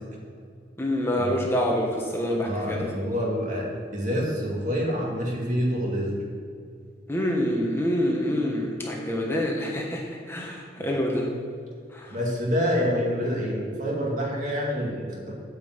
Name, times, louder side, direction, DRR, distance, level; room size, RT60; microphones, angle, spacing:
voice 1, 0.8-2.9 7.1-10.0 10.3-11.3 11.9-12.1, equal, 15° left, -1 dB, 1.2 m, -26 dB
voice 2, 2.4-6.2 10.8-10.9 12.1-15.3, equal, 45° right, -2 dB, 2.2 m, -27 dB
9.3 x 5.4 x 8.0 m, 2.3 s
head